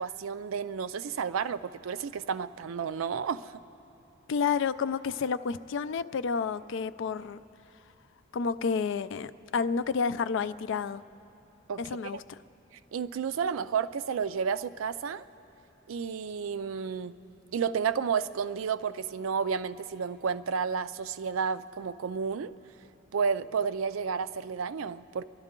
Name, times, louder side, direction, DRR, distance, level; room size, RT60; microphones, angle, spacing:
voice 1, 0.0-3.6 11.7-11.8 12.1-12.2 12.9-15.2 15.9-17.2 17.5-22.5 23.1-25.2, right 6 dB, 85° right, 13 dB, 0.4 m, -31 dB
voice 2, 4.3-7.4 8.3-11.0 11.8-12.4, left 5 dB, 65° left, 14 dB, 0.4 m, -30 dB
30.0 x 12.0 x 3.7 m, 3.0 s
head